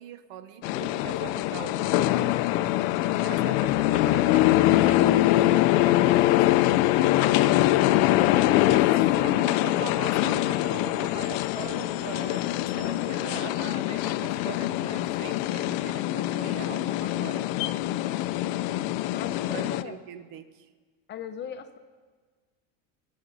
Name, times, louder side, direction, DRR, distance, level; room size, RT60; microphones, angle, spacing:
voice 1, 0.0-2.3 3.2-6.7 8.7-8.9 9.2-17.5 19.5-20.7, right 10 dB, 70° right, 11 dB, 1.0 m, -42 dB
sound 1, 0.6-19.8, left 15 dB, 80° left, 0.6 m, -23 dB
voice 2, 19.1-20.0 21.1-21.8, left 8 dB, 30° left, 8 dB, 0.6 m, -39 dB
22.5 x 10.5 x 4.0 m, 1.5 s
cardioid pair, 160°, 38 cm